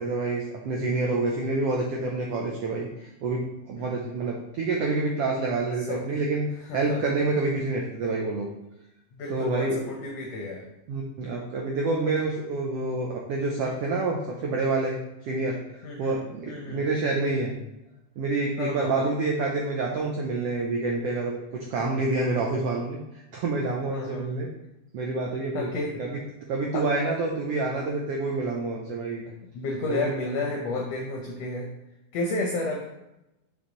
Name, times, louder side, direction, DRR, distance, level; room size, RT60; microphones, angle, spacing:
voice 1, 0.0-8.5 9.3-9.9 10.9-17.6 18.2-24.5 24.9-25.7 26.0-26.1 26.5-29.2 29.9-30.1, right 3 dB, 85° right, -1 dB, 1.3 m, -28 dB
voice 2, 3.8-4.1 5.9-6.0 6.6-7.1 9.2-10.7 15.8-16.2 16.5-16.9 18.6-19.1 23.9-24.4 25.5-26.0 26.7-26.9 29.5-31.7 32.1-32.9, left 2 dB, 70° left, 0 dB, 1.6 m, -31 dB
5.3 x 4.9 x 3.9 m, 0.90 s
omnidirectional pair, 3.6 m